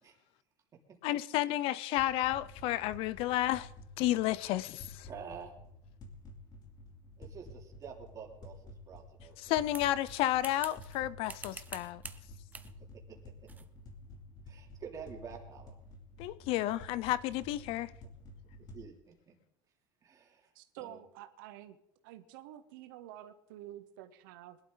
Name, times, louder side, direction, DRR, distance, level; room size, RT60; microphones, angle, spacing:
voice 1, 1.0-3.7 4.0-5.1 9.4-12.0 16.2-17.9, left 14 dB, 60° left, 0.5 m, -31 dB
sound 1, 2.0-18.8, left 1 dB, 40° left, 2.7 m, -52 dB
voice 2, 5.1-5.5 7.2-9.5 14.5-15.7 18.7-19.3 20.0-20.5 20.8-21.0, right 7 dB, 30° right, 3.0 m, -48 dB
sound 2, 9.7-11.0 11.3-12.2 12.5-12.7 13.5-13.7, right 4 dB, 15° right, 0.8 m, -47 dB
voice 3, 20.5-21.8 22.0-24.6, right 12 dB, 85° right, 1.0 m, -49 dB
21.0 x 11.5 x 3.9 m
cardioid pair, 130°, 11 cm